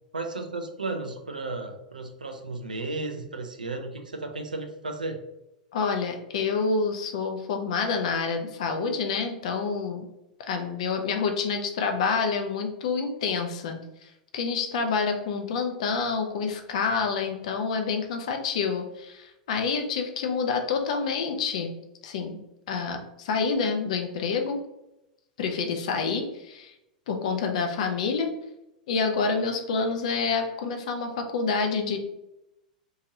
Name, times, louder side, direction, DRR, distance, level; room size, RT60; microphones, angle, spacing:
voice 1, 0.1-5.2, right 3 dB, 80° right, 6 dB, 0.4 m, -34 dB
voice 2, 5.7-10.0 10.5-21.7 22.0-22.4 22.7-24.6 25.4-26.7 27.1-28.3 28.9-32.0, left 5 dB, 55° left, 5 dB, 0.5 m, -28 dB
2.8 x 2.5 x 2.8 m, 0.88 s
figure-of-eight pair, 95°, 4 cm